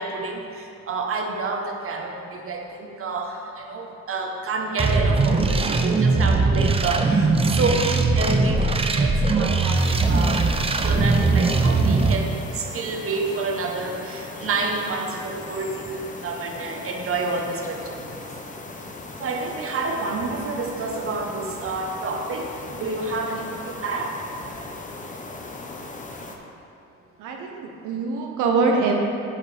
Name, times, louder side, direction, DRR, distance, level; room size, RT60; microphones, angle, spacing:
voice 1, 0.0-10.5 10.8-18.3 19.2-24.2, right 3 dB, 45° right, 2 dB, 1.0 m, -29 dB
sound 1, 4.8-12.2, right 3 dB, 20° right, 0.5 m, -20 dB
sound 2, 9.7-26.4, left 2 dB, 25° left, 0.8 m, -38 dB
voice 2, 27.2-29.0, right 4 dB, 90° right, 1 dB, 0.8 m, -23 dB
13.0 x 4.6 x 3.3 m, 2.6 s
cardioid pair, 90°, 30 cm